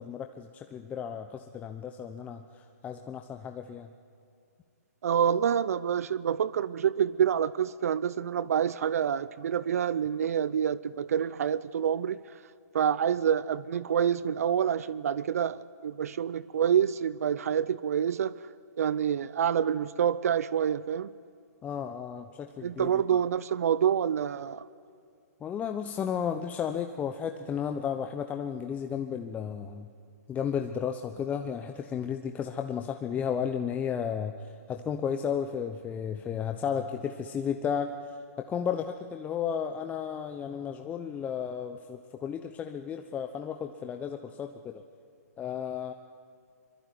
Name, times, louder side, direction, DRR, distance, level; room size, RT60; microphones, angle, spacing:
voice 1, 0.0-3.9 21.6-23.0 25.4-29.9 30.3-44.8 45.4-45.9, left 7 dB, 15° left, 0.9 m, -33 dB
voice 2, 5.0-12.2 12.7-18.4 18.8-21.1 22.6-24.6, right 8 dB, 60° right, 0.7 m, -27 dB
24.0 x 23.5 x 9.4 m
hypercardioid pair, 135°, 9 cm